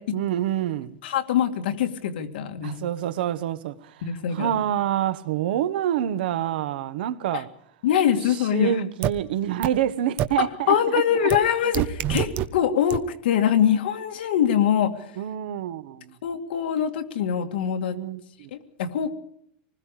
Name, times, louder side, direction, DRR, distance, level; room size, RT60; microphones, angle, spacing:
voice 1, 0.1-0.9 2.6-3.7 4.3-7.5 8.3-11.3 15.2-16.1 17.9-18.5, right 11 dB, 70° right, 1.4 m, -27 dB
voice 2, 1.0-2.8 4.0-4.6 7.3-7.4 7.8-8.7 10.4-14.9 16.2-18.0 18.5-19.2, left 9 dB, 75° left, 2.3 m, -23 dB
sound 1, 9.0-9.1 9.6-9.7 10.2-10.3 11.3-11.4 11.7-12.5 12.9-13.0, right 12 dB, 30° right, 1.0 m, -23 dB
27.0 x 20.5 x 5.0 m
supercardioid pair, 175°, 5 cm